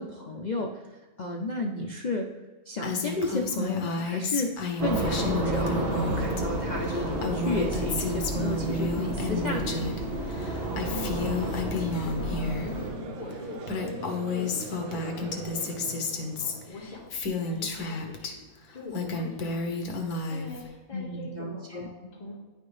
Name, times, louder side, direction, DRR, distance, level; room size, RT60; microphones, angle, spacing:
voice 1, 0.0-2.3 2.7-10.0 20.9-21.9, left 2 dB, 70° left, 1 dB, 0.4 m, -32 dB
Female speech woman speaking, 2.8-6.4 6.7-10.0 10.3-12.7 13.3-13.4 13.6-18.3 18.7-20.7, left 3 dB, 90° left, 1.4 m, -31 dB
sound 1, 4.8-12.9, right 1 dB, 40° right, 1.4 m, -31 dB
voice 2, 10.8-15.9 16.4-18.4 18.7-22.4, left 2 dB, 30° left, -6 dB, 1.8 m, -43 dB
Conversation / Crowd, 11.8-17.1, right 3 dB, 75° right, 1.2 m, -42 dB
9.6 x 5.2 x 3.2 m, 1.3 s
omnidirectional pair, 1.6 m